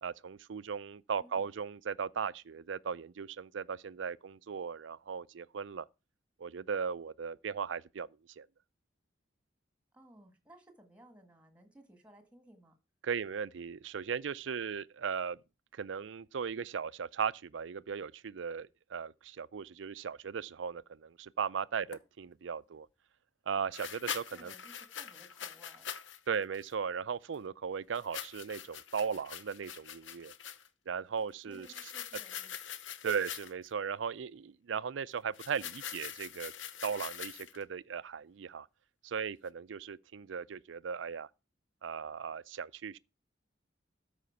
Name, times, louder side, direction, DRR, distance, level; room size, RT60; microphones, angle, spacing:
voice 1, 0.0-5.9 6.4-8.1 8.4-8.5 13.0-15.4 15.7-22.9 23.5-24.5 26.3-30.3 30.9-31.7 33.0-36.5 36.8-38.7 39.0-41.3 41.8-43.0, right 6 dB, 75° right, 0.4 m, -37 dB
voice 2, 9.9-12.8 24.3-25.9 31.4-32.5, equal, 5° right, 1.7 m, -58 dB
sound 1, 21.9-22.0 23.7-26.2 26.5-26.7 27.9-30.7 31.5-33.7 35.3-37.6, left 9 dB, 80° left, 0.9 m, -43 dB
13.0 x 5.0 x 5.7 m
head